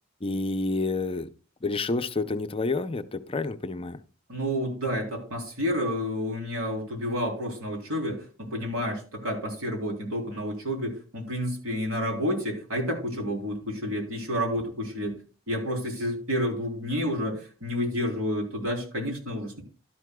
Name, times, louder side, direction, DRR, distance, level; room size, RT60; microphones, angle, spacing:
voice 1, 0.2-1.3 1.6-4.0, left 3 dB, 25° left, 0.6 m, -29 dB
voice 2, 4.3-15.1 15.5-19.6, equal, 85° right, 3.6 m, -30 dB
12.0 x 11.0 x 2.3 m
head